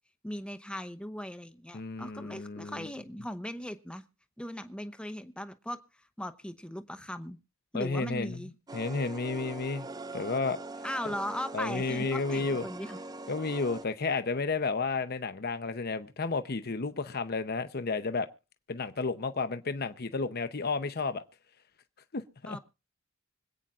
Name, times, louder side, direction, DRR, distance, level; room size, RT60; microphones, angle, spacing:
voice 1, 0.2-4.0 4.4-5.8 6.2-7.4 7.7-8.5 10.8-13.0 22.5-22.6, left 1 dB, 5° left, 0.8 m, -38 dB
voice 2, 1.7-2.9 7.7-8.4 8.7-9.9 10.1-10.6 11.1-11.2 11.5-12.6 13.3-18.3 18.7-21.2 22.1-22.6, left 4 dB, 50° left, 0.8 m, -32 dB
sound 1, 8.7-13.9, right 2 dB, 20° right, 0.5 m, -42 dB
25.5 x 8.9 x 2.5 m
head